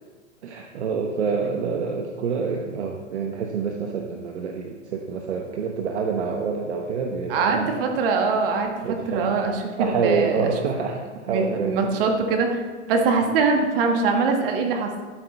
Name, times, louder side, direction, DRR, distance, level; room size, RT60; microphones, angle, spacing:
voice 1, 0.4-7.9 8.8-9.3 9.8-12.1, right 5 dB, 65° right, 2 dB, 1.0 m, -27 dB
voice 2, 7.3-8.7 9.1-10.5 11.3-12.6 12.9-14.9, right 4 dB, 50° right, 3 dB, 1.7 m, -22 dB
12.5 x 7.9 x 3.4 m, 1.4 s
figure-of-eight pair, 105°, 37 cm